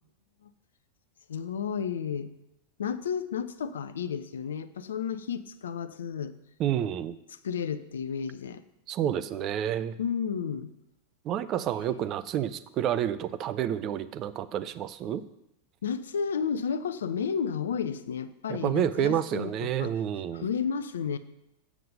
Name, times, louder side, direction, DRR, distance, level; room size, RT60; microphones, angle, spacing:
voice 1, 1.3-2.3 2.8-6.4 7.3-8.6 10.0-10.7 15.8-19.9 20.3-21.2, left 7 dB, 65° left, 13 dB, 0.5 m, -32 dB
voice 2, 6.6-7.1 8.9-9.9 11.3-15.2 18.5-20.5, right 10 dB, 35° right, 13 dB, 0.5 m, -29 dB
7.5 x 7.2 x 5.4 m, 0.84 s
figure-of-eight pair, 90°, 0 cm